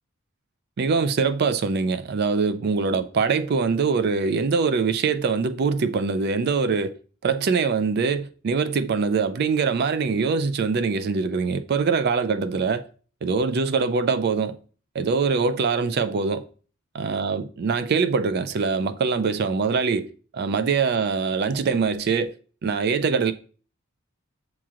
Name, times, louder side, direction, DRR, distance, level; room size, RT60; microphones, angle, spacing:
voice 1, 0.8-6.9 7.2-12.8 13.2-14.6 14.9-16.4 16.9-20.1 20.3-22.3 22.6-23.3, right 5 dB, 50° right, 0.3 m, -23 dB
7.3 x 2.9 x 2.4 m
head